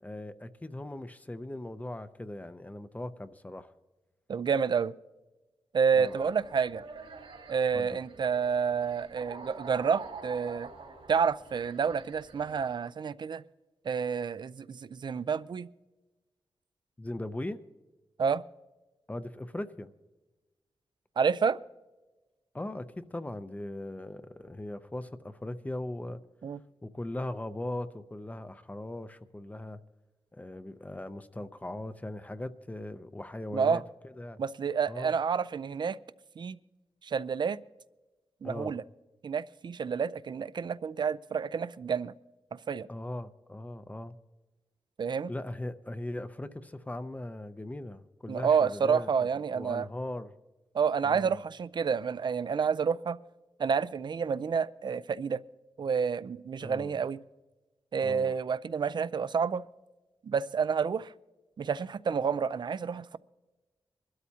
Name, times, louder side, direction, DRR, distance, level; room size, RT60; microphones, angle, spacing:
voice 1, 0.0-3.7 5.9-6.2 7.7-8.0 17.0-17.6 19.1-19.9 22.5-26.2 26.8-29.8 30.3-34.4 34.9-35.1 38.4-38.8 42.9-44.2 45.3-49.1 49.5-50.4 51.0-51.4 56.6-56.9 58.0-58.4, left 1 dB, 15° left, 0.5 m, -39 dB
voice 2, 4.3-5.0 5.7-6.8 7.5-10.7 11.1-13.4 13.9-15.7 18.2-18.4 21.2-21.6 26.4-26.6 33.5-33.8 34.4-36.0 36.4-36.6 37.0-37.6 38.4-38.8 39.2-42.1 42.5-42.9 45.0-45.3 48.3-49.9 50.7-53.2 53.6-55.4 55.8-57.2 57.9-59.6 60.2-61.1 61.6-63.2, right 6 dB, 50° right, 0.4 m, -29 dB
sound 1, 5.9-12.7, right 4 dB, 85° right, 2.6 m, -47 dB
24.0 x 12.5 x 2.8 m
wide cardioid pair, 110°, 10 cm